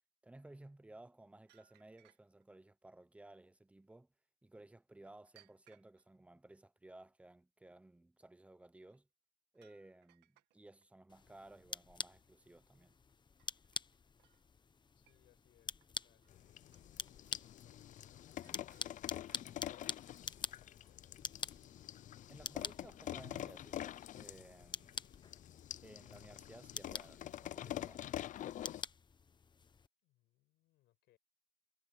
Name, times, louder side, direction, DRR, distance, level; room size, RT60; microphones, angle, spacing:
voice 1, 0.2-4.1 4.4-9.1 9.5-13.0 22.3-25.0 25.8-28.1, right 2 dB, 5° right, 0.9 m, -58 dB
sound 1, 1.5-2.6 5.1-6.1 8.8-9.0 9.5-10.9 12.9-13.1 13.4-14.5 15.0-15.5 15.8-16.5 16.7-17.4 18.4-19.0 19.3-19.9, right 15 dB, 85° right, 2.0 m, -71 dB
sound 2, 11.1-29.9, left 5 dB, 25° left, 1.1 m, -48 dB
voice 2, 14.9-16.3 17.0-21.3 30.0-31.2, left 16 dB, 85° left, 5.7 m, -72 dB
sound 3, 16.3-28.8, left 12 dB, 50° left, 0.5 m, -47 dB
cardioid pair, 110°, 17 cm